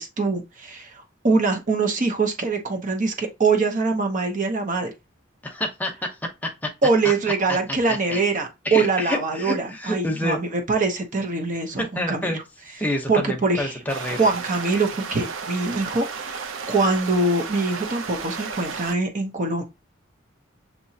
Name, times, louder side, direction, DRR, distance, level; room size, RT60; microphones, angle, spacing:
voice 1, 0.0-4.9 6.8-12.4 13.1-13.8 14.2-19.6, right 3 dB, 40° right, 0.8 m, -23 dB
voice 2, 5.4-6.2 6.4-6.7 7.9-8.2 8.6-10.4 11.8-12.4 12.8-14.3, left 1 dB, 10° left, 0.8 m, -28 dB
sound 1, 13.9-19.0, right 5 dB, 80° right, 0.6 m, -33 dB
6.7 x 2.9 x 2.7 m
head